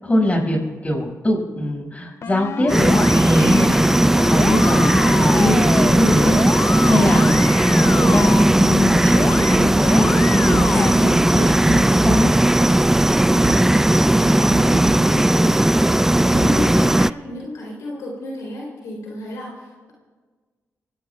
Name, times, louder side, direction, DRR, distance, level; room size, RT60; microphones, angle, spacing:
voice 1, 0.0-0.6 0.8-12.3, left 1 dB, 25° left, 0 dB, 6.0 m, -22 dB
sound 1, 2.2-3.7 4.1-8.4 9.1-9.6 9.8-10.9, left 6 dB, 60° left, 0.6 m, -28 dB
sound 2, 2.7-17.1, right 1 dB, 10° right, 0.3 m, -16 dB
sound 3, 8.8-8.9 9.1-9.7 10.5-10.7 11.7-12.9 13.4-13.9 14.5-15.4 15.8-16.5, right 3 dB, 70° right, 3.6 m, -31 dB
voice 2, 13.2-19.9, left 1 dB, 85° left, -2 dB, 3.5 m, -33 dB
26.5 x 17.5 x 2.4 m, 1.4 s
supercardioid pair, 55°, 5 cm